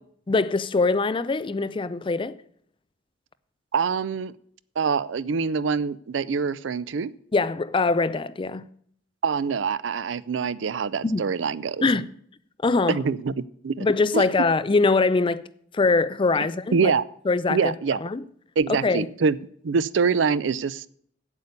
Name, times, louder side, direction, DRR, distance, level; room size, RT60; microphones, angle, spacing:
voice 1, 0.3-2.4 7.3-8.7 11.0-11.3 11.8-12.1 12.6-13.0 13.8-15.4 15.7-16.9 17.3-17.7 18.0-18.2 18.7-19.1, left 3 dB, 30° left, 0.4 m, -23 dB
voice 2, 3.7-4.3 4.8-7.1 9.2-11.9 12.9-13.3 13.6-13.9 14.1-14.2 16.7-17.0 17.5-18.0 18.6-19.4 19.6-20.9, right 5 dB, 85° right, 0.5 m, -24 dB
8.3 x 8.3 x 6.6 m
head